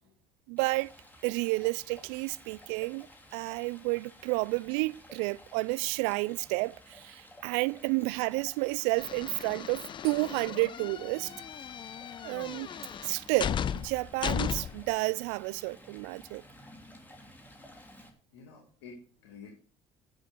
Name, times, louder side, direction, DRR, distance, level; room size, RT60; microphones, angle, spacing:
voice 1, 0.5-0.9 1.2-3.1 3.3-11.3 12.2-12.7 13.0-16.4, right 25 dB, 75° right, 0.4 m, -31 dB
Stream, 0.6-18.1, left 1 dB, 15° left, 3.0 m, -54 dB
sound 1, 9.0-14.9, left 8 dB, 35° left, 0.4 m, -36 dB
voice 2, 18.3-19.5, left 4 dB, 85° left, 2.5 m, -51 dB
10.5 x 6.5 x 6.6 m
hypercardioid pair, 65°, 14 cm